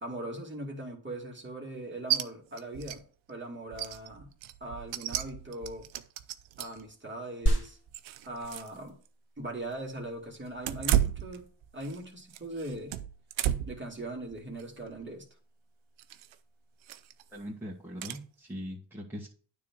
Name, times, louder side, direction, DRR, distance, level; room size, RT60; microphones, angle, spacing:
voice 1, 0.0-3.0 3.3-4.3 4.6-5.9 6.6-7.8 8.3-8.9 9.4-11.4 11.7-13.0 13.7-15.2, right 1 dB, 25° right, -1 dB, 2.5 m, -40 dB
sound 1, 2.1-2.2 2.6-3.0 3.3-3.4 3.7-6.9 7.4-8.8 9.0-9.1 10.6-12.0 12.3-13.8 14.3-14.6 16.0-16.3 16.8-17.2 18.0-18.2, right 12 dB, 90° right, 0.6 m, -33 dB
sound 2, 7.5-17.4, right 1 dB, 25° left, 2.5 m, -37 dB
voice 2, 17.3-19.3, equal, 5° right, -5 dB, 2.2 m, -41 dB
9.4 x 3.7 x 6.2 m, 0.43 s
cardioid pair, 65°, 45 cm